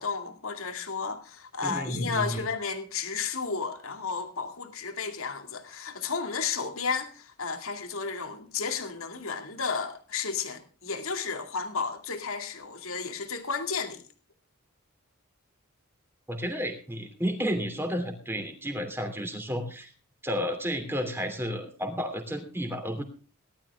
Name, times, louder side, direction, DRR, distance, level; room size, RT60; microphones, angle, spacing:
voice 1, 0.0-14.0, left 5 dB, 75° left, 2.2 m, -33 dB
voice 2, 1.6-2.4 16.3-19.9 20.2-23.0, equal, 10° right, 2.9 m, -32 dB
18.5 x 12.5 x 3.5 m
head